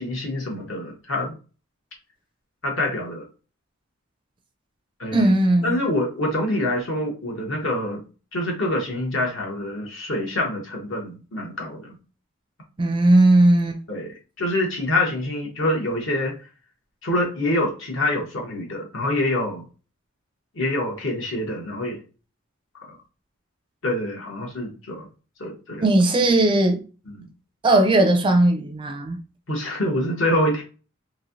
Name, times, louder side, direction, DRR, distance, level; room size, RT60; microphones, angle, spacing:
voice 1, 0.0-1.3 2.6-3.3 5.0-5.3 5.6-8.0 8.3-12.0 13.9-16.3 17.0-19.7 20.5-22.0 22.8-23.0 23.8-25.1 25.4-25.8 27.2-27.3 29.5-30.6, left 1 dB, 65° left, 1.1 m, -26 dB
voice 2, 5.1-5.8 12.8-13.8 25.8-26.8 27.6-29.2, right 2 dB, 25° right, 0.4 m, -18 dB
3.1 x 2.6 x 2.5 m
head